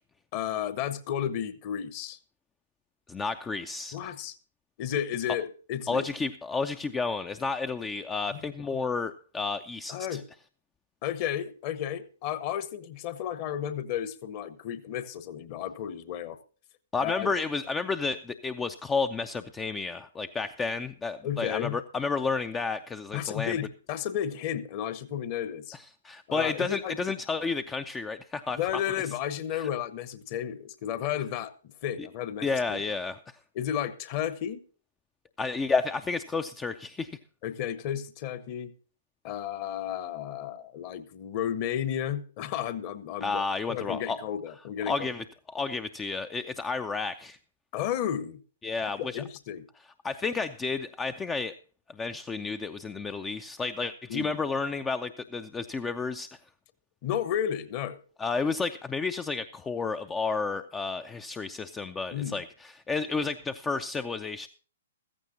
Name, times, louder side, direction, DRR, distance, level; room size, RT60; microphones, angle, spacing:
voice 1, 0.3-2.2 3.9-4.3 4.8-6.1 8.3-8.4 9.9-10.2 11.0-16.4 17.0-17.3 21.2-21.8 23.1-25.8 26.3-27.0 28.6-32.8 33.5-34.6 37.4-38.7 39.2-43.4 43.7-45.1 47.7-48.4 48.9-49.6 54.1-54.4 57.0-58.0 62.1-62.4, left 10 dB, 35° left, 1.1 m, -33 dB
voice 2, 3.1-4.1 5.9-10.2 16.9-23.6 25.7-28.8 29.5-29.7 32.4-33.2 35.4-37.2 43.2-44.2 44.9-47.4 48.6-49.2 50.0-51.5 51.9-56.4 58.2-64.5, left 4 dB, 10° left, 0.4 m, -31 dB
15.0 x 14.5 x 2.7 m
figure-of-eight pair, 120°, 0 cm